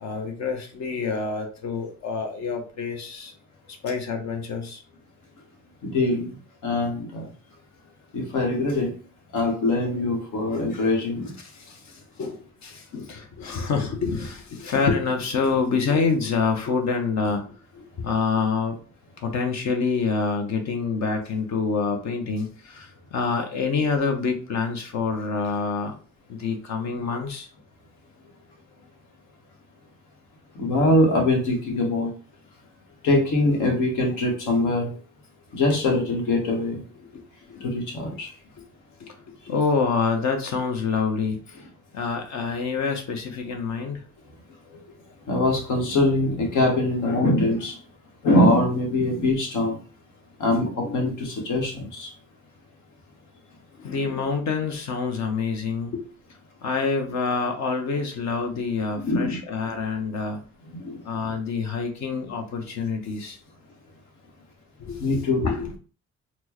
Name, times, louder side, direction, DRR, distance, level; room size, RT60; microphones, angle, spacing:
voice 1, 0.0-3.3 3.8-4.8 11.7-11.8 12.2-17.4 17.7-18.8 19.2-25.9 26.3-27.5 37.1-37.2 37.5-37.7 39.0-39.1 39.5-41.4 41.9-44.0 53.8-56.0 56.6-60.4 61.1-63.4 64.8-65.8, left 5 dB, 65° left, 4 dB, 0.8 m, -27 dB
voice 2, 5.8-6.4 6.6-7.3 8.1-8.9 9.3-11.3 30.5-32.1 33.0-34.9 35.5-36.8 37.6-38.3 45.3-47.8 48.2-49.8 50.4-52.1 59.0-59.4 60.7-61.3 65.0-65.5, left 2 dB, 85° left, 1 dB, 1.2 m, -23 dB
4.3 x 2.2 x 2.9 m, 0.38 s
cardioid pair, 90°, 30 cm